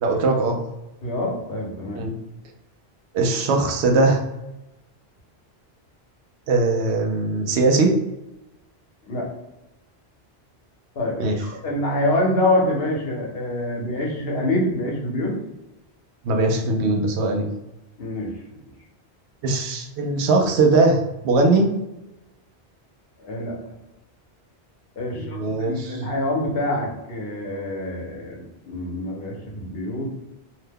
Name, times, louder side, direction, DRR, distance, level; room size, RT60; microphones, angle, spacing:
voice 1, 0.0-0.6 1.9-2.1 3.1-4.2 6.5-8.0 11.2-11.4 16.2-17.5 19.4-21.7 25.2-26.0, right 3 dB, 85° right, 3 dB, 0.8 m, -20 dB
voice 2, 1.0-2.0 9.1-9.3 11.0-15.3 18.0-18.4 23.2-23.6 25.0-30.1, left 1 dB, 70° left, -1 dB, 1.0 m, -26 dB
2.8 x 2.1 x 3.4 m, 0.97 s
omnidirectional pair, 1.1 m